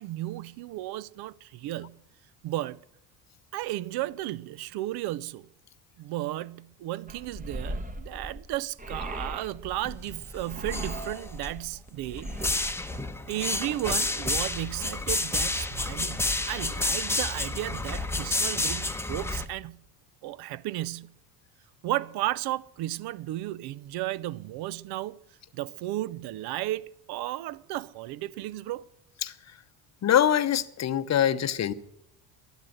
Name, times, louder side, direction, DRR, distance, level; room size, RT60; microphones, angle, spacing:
voice 1, 0.0-2.0 2.4-2.8 3.5-5.5 6.0-12.3 13.3-19.8 20.2-21.1 21.8-25.2 25.5-28.9, right 15 dB, 55° right, 0.6 m, -34 dB
sound 1, 7.1-13.0, right 1 dB, 15° right, 1.3 m, -39 dB
sound 2, 9.8-10.2 10.5-11.5 12.2-19.5, left 2 dB, 5° left, 1.0 m, -30 dB
voice 2, 30.0-31.7, left 10 dB, 35° left, 0.8 m, -24 dB
11.5 x 11.5 x 7.7 m
hypercardioid pair, 80°, 46 cm